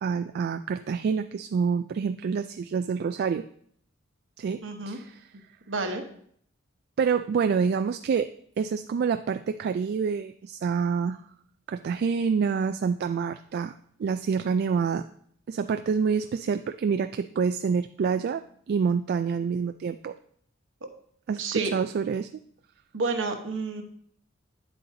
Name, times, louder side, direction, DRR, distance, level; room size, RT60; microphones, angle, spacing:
voice 1, 0.0-3.5 4.4-5.3 7.0-11.2 11.7-13.7 14.0-15.0 15.5-20.1 21.3-22.3, right 6 dB, 55° right, 9 dB, 0.3 m, -27 dB
voice 2, 4.6-5.0 5.7-6.0 20.8-20.9 21.4-21.7 22.9-23.8, right 3 dB, 70° right, 5 dB, 1.1 m, -30 dB
9.2 x 7.8 x 2.8 m, 0.63 s
head